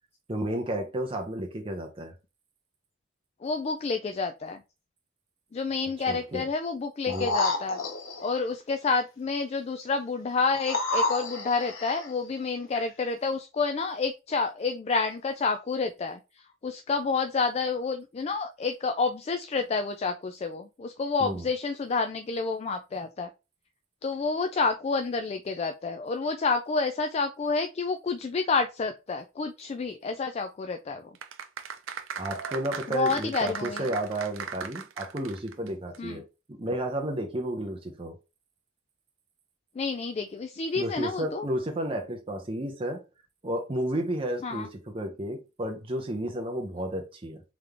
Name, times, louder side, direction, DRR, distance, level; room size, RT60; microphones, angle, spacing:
voice 1, 0.3-2.1 6.1-6.5 7.1-7.3 21.2-21.5 32.2-36.2 36.6-38.2 40.7-43.0 43.4-47.4, right 1 dB, 30° right, 0.7 m, -32 dB
voice 2, 3.4-4.6 5.5-7.8 8.2-16.2 16.6-23.3 24.0-31.1 32.9-33.9 36.0-36.2 39.8-41.5 44.4-44.7, left 4 dB, 35° left, 0.3 m, -29 dB
sound 1, 7.1-8.4 10.5-12.1 12.8-12.9, left 2 dB, 90° left, 0.8 m, -30 dB
sound 2, 31.1-35.7 35.9-36.0, right 6 dB, 90° right, 0.6 m, -37 dB
3.7 x 3.5 x 3.3 m
head